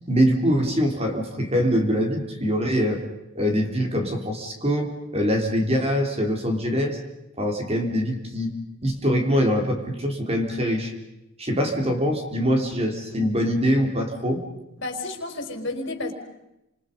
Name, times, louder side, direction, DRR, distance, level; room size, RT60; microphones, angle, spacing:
voice 1, 0.1-3.0 3.4-7.0 7.4-8.5 8.8-10.9 11.4-14.4, equal, 30° right, 3 dB, 3.9 m, -23 dB
voice 2, 14.8-16.1, left 2 dB, 55° left, 5 dB, 4.8 m, -31 dB
29.5 x 27.5 x 5.5 m, 0.89 s
head